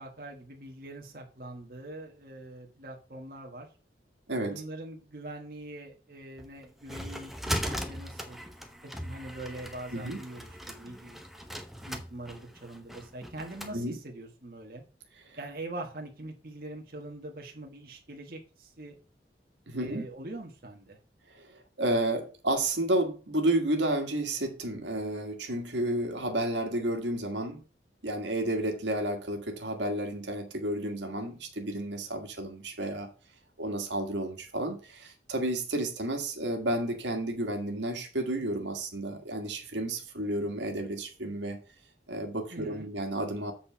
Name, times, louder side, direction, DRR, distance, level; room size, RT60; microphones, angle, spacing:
voice 1, 0.0-3.7 4.5-8.4 9.0-11.2 11.8-14.8 15.4-19.0 19.8-21.0 42.5-42.9, right 1 dB, 50° right, 1.4 m, -43 dB
voice 2, 4.3-4.6 9.9-10.2 13.7-14.0 15.3-15.4 19.7-20.0 21.3-27.6 28.0-33.1 33.6-41.6 42.1-43.5, right 1 dB, 85° right, 1.7 m, -31 dB
sound 1, 6.4-13.8, equal, ahead, 0.7 m, -39 dB
8.0 x 4.3 x 5.6 m
head